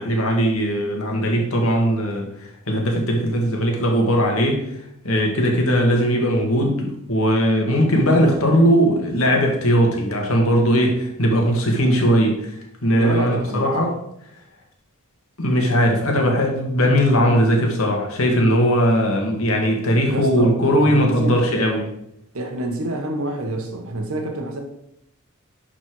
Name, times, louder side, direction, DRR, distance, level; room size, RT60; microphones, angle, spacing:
voice 1, 0.0-2.3 2.7-4.6 5.0-14.0 15.4-21.9, equal, 80° left, 2.0 m, -19 dB
voice 2, 12.9-13.7 20.1-20.6 20.8-21.5 22.3-24.6, right 1 dB, 80° right, 1.6 m, -27 dB
11.0 x 4.4 x 4.8 m
head